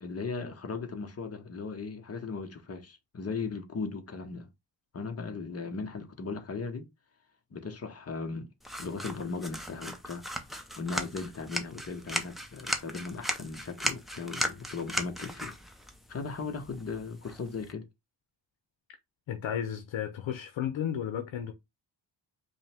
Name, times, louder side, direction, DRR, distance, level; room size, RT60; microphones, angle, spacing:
voice 1, 0.0-4.5 4.9-6.9 7.5-8.5 8.8-10.2 10.8-15.5 16.1-17.9, left 4 dB, 30° left, 0.8 m, -37 dB
sound 1, 8.6-17.7, equal, ahead, 0.4 m, -37 dB
voice 2, 19.3-21.5, left 9 dB, 75° left, 0.7 m, -33 dB
5.1 x 2.1 x 3.4 m
wide cardioid pair, 165°, 46 cm